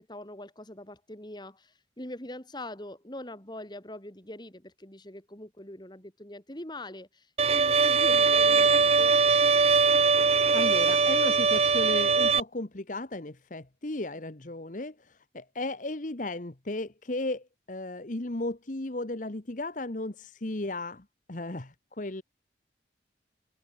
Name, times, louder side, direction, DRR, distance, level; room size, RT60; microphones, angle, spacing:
voice 1, 0.0-9.2, left 1 dB, 25° left, 3.3 m, -42 dB
Bowed string instrument, 7.4-12.4, right 4 dB, 35° right, 0.8 m, -21 dB
voice 2, 10.2-22.2, left 2 dB, 45° left, 1.3 m, -35 dB
head